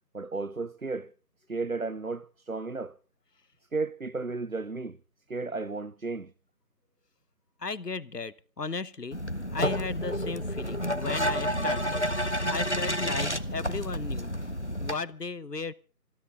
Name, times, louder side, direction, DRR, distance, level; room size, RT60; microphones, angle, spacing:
voice 1, 0.1-1.1 1.5-3.0 3.7-5.0 5.3-6.3, right 3 dB, 60° right, 0.7 m, -33 dB
voice 2, 7.6-9.2 9.5-12.1 12.5-14.3 14.8-15.7, left 4 dB, 70° left, 1.2 m, -35 dB
sound 1, 9.1-14.9, equal, 45° left, 1.0 m, -30 dB
26.5 x 13.0 x 3.8 m
figure-of-eight pair, 180°, 49 cm